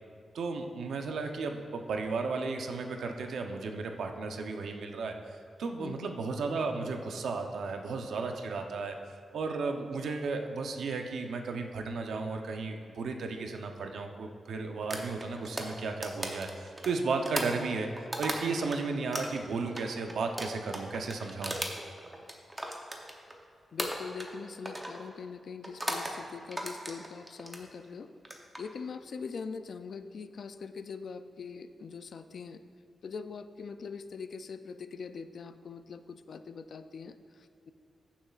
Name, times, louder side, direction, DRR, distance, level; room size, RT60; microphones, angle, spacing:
voice 1, 0.3-17.9 18.2-21.6, right 4 dB, 85° right, 4 dB, 0.7 m, -34 dB
voice 2, 5.8-6.2 23.7-28.1 28.6-32.6 33.0-37.7, left 5 dB, 55° left, 10 dB, 0.4 m, -42 dB
sound 1, 14.9-18.8 19.1-23.4 23.8-24.4 24.7-25.0 25.6-26.2 26.5-27.6 28.2-28.6, right 1 dB, 10° right, 0.8 m, -37 dB
15.0 x 7.2 x 2.4 m, 2.4 s
wide cardioid pair, 175°, 0 cm